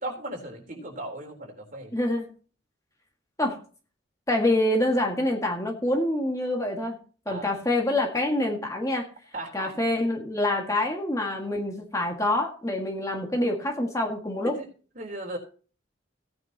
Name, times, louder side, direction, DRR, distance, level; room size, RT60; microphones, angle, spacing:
voice 1, 0.0-1.9 7.3-7.6 9.3-9.7 14.4-14.7 15.0-15.4, right 1 dB, 45° right, 2 dB, 3.7 m, -37 dB
voice 2, 1.9-2.3 3.4-3.6 4.3-7.0 7.3-9.1 9.5-14.5, left 1 dB, 15° left, 1 dB, 1.8 m, -26 dB
16.5 x 9.4 x 2.9 m, 0.39 s
head